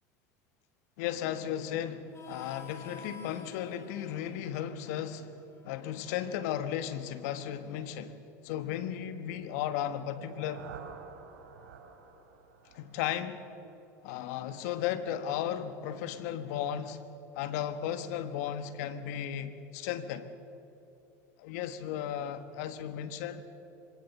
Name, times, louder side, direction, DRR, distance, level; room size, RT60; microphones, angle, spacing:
voice 1, 1.0-10.7 12.7-13.4 14.0-17.0 17.3-20.3 21.4-23.4, left 10 dB, 70° left, 11 dB, 1.4 m, -35 dB
Harmonica, 2.1-7.4, left 2 dB, 30° left, 4.6 m, -52 dB
sound 1, 9.9-13.9, right 6 dB, 85° right, 5.7 m, -50 dB
24.0 x 19.0 x 7.1 m, 2.9 s
hypercardioid pair, 80°, 9 cm